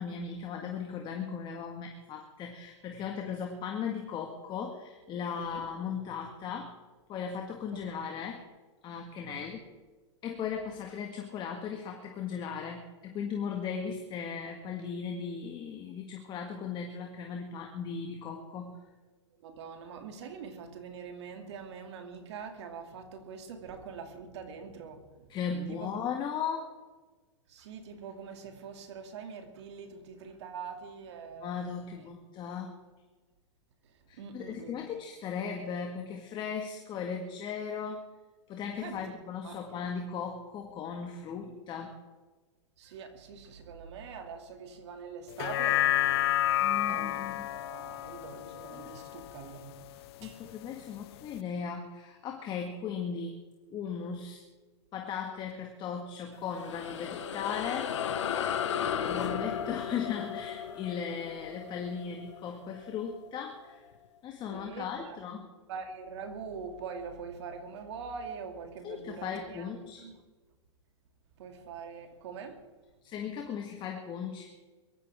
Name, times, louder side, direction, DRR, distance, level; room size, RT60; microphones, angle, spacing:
voice 1, 0.0-6.8 7.1-8.4 8.8-9.6 10.2-18.8 25.3-26.8 31.4-32.7 34.1-38.0 38.5-41.9 46.6-47.5 47.9-48.1 48.7-48.9 50.2-53.4 53.7-54.4 54.9-58.0 59.1-63.8 64.2-65.5 68.8-70.1 73.0-74.5, left 6 dB, 30° left, 1.8 m, -37 dB
voice 2, 19.4-25.0 25.7-25.9 27.5-31.6 31.9-32.1 34.2-34.8 38.8-39.0 39.4-39.6 42.8-46.2 46.9-49.7 50.2-50.4 58.6-59.0 64.5-65.2 65.7-69.7 70.0-70.1 71.4-72.6, right 6 dB, 65° right, 2.7 m, -43 dB
sound 1, 45.3-49.9 50.3-50.4, left 13 dB, 55° left, 0.7 m, -30 dB
sound 2, 56.3-63.1, left 8 dB, 75° left, 1.5 m, -35 dB
22.5 x 14.0 x 3.6 m
hypercardioid pair, 115°, 16 cm